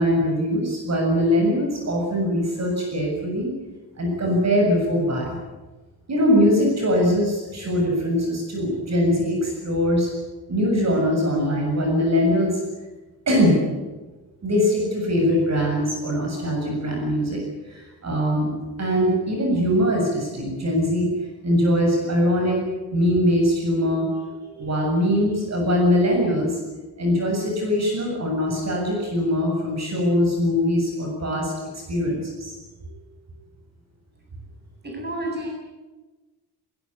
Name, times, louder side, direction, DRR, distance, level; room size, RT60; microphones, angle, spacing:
voice 1, 0.0-3.5 4.0-5.4 6.1-10.1 10.5-12.6 13.3-13.7 14.4-17.4 17.6-18.5 18.8-21.1 21.4-22.6 22.9-24.1 24.4-26.6 27.0-31.5 31.9-32.5, equal, 45° right, 0 dB, 7.3 m, -22 dB
voice 2, 34.8-35.5, right 1 dB, 25° right, 1 dB, 7.8 m, -30 dB
21.5 x 21.5 x 10.0 m, 1.2 s
wide cardioid pair, 165°, 38 cm